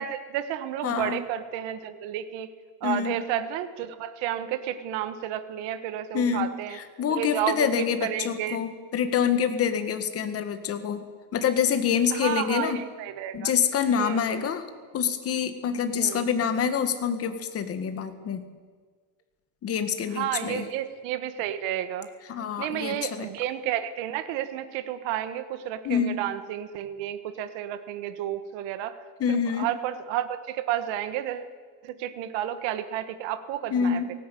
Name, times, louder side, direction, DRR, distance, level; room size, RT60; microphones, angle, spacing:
voice 1, 0.0-2.5 2.8-6.8 7.2-7.7 8.0-8.6 12.1-13.5 14.0-14.4 16.0-16.2 20.1-22.1 22.6-29.0 29.3-31.5 31.8-34.0, right 11 dB, 60° right, 11 dB, 1.5 m, -31 dB
voice 2, 0.8-1.2 2.8-3.2 6.1-11.0 11.3-12.8 13.3-14.7 14.9-18.5 19.6-20.7 22.3-23.3 25.8-26.2 29.2-29.7 33.7-34.1, left 7 dB, 30° left, 9 dB, 1.7 m, -26 dB
18.0 x 17.0 x 9.3 m, 1.5 s
cardioid pair, 170°, 49 cm